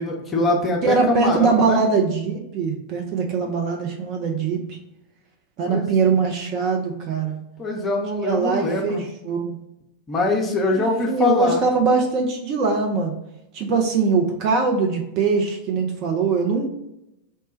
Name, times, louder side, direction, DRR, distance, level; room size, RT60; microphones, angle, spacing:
voice 1, 0.0-1.8 5.7-6.0 7.6-9.0 10.1-11.6, left 2 dB, 20° left, 0 dB, 0.6 m, -23 dB
voice 2, 0.8-4.8 5.6-7.4 8.2-9.0 9.2-9.6 10.7-13.1 13.5-16.7, right 4 dB, 40° right, 2 dB, 0.5 m, -22 dB
3.2 x 2.2 x 4.1 m, 0.86 s
figure-of-eight pair, 90°, 0 cm